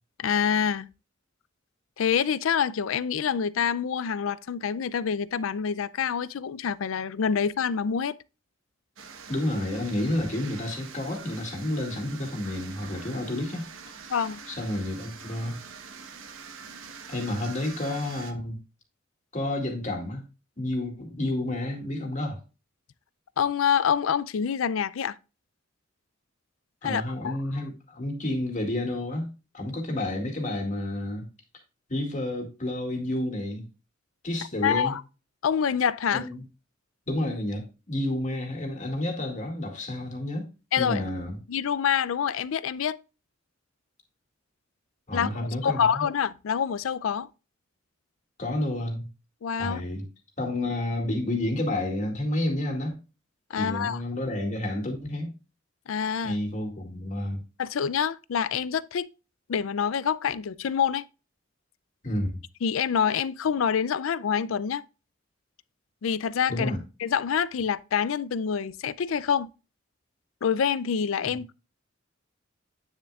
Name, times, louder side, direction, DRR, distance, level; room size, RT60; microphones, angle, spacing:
voice 1, 0.2-0.9 2.0-8.1 14.1-14.4 23.4-25.2 26.8-27.4 34.6-35.0 35.4-36.3 40.7-41.0 41.5-43.0 45.1-47.3 49.4-49.8 53.5-54.0 55.9-56.4 57.6-59.1 59.5-61.0 62.6-64.8 66.0-66.7 67.0-69.5 70.4-71.5, left 7 dB, 85° left, 0.4 m, -26 dB
sound 1, 9.0-18.3, right 5 dB, 85° right, 1.1 m, -44 dB
voice 2, 9.3-13.7 14.5-15.7 17.1-18.6 19.3-20.2 20.6-22.4 26.8-31.3 31.9-33.6 34.2-34.9 36.1-36.4 37.1-40.5 40.8-41.4 45.1-46.0 48.4-49.1 49.6-50.1 50.4-53.0 53.5-55.3 56.2-57.4 62.0-62.4 66.5-66.8 71.2-71.4, left 1 dB, 40° left, 2.1 m, -30 dB
9.4 x 6.6 x 2.4 m
head